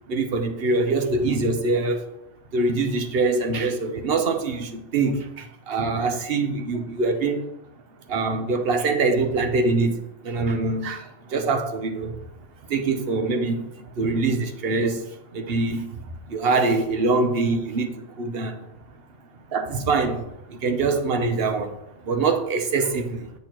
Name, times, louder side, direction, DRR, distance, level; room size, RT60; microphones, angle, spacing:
voice 1, 0.1-2.0 2.5-7.5 8.1-10.0 10.2-12.2 12.7-15.1 15.3-15.9 16.3-18.6 19.5-21.8 22.0-23.3, right 3 dB, 50° right, 1.0 m, -24 dB
8.0 x 6.5 x 3.0 m
omnidirectional pair, 1.4 m